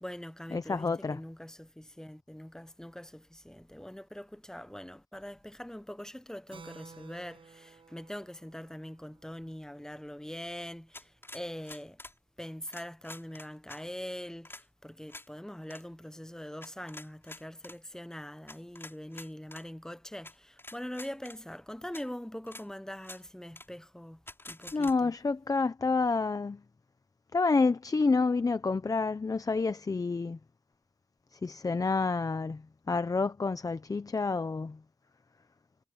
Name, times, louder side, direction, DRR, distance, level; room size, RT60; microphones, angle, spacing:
voice 1, 0.0-12.0 12.4-24.2 24.5-25.1, equal, 5° left, 1.0 m, -43 dB
voice 2, 0.5-1.2 24.7-26.6 27.3-30.4 31.4-32.6 32.9-34.8, left 4 dB, 40° left, 0.8 m, -28 dB
Keyboard (musical), 6.5-10.6, right 5 dB, 70° right, 6.8 m, -55 dB
sound 1, 10.9-12.2 12.7-13.8 14.4-14.6 15.1-15.3 15.6-15.8 16.6-17.8 18.5-19.6 20.2-20.3 20.6-21.4 21.9-22.0 22.5-22.6 23.0-23.2 23.5-23.7 24.3-24.9, left 2 dB, 25° left, 6.0 m, -47 dB
cardioid pair, 60°, 9 cm